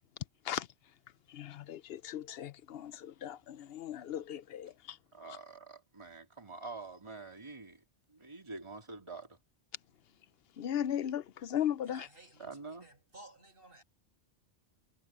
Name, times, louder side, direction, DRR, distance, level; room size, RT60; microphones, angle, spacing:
voice 1, 1.3-5.0 10.6-12.1, left 10 dB, 65° left, 0.8 m, -37 dB
voice 2, 5.1-9.4 12.4-12.9, right 3 dB, 25° right, 2.8 m, -47 dB
voice 3, 11.9-13.8, right 1 dB, 50° right, 7.9 m, -56 dB
omnidirectional pair, 1.2 m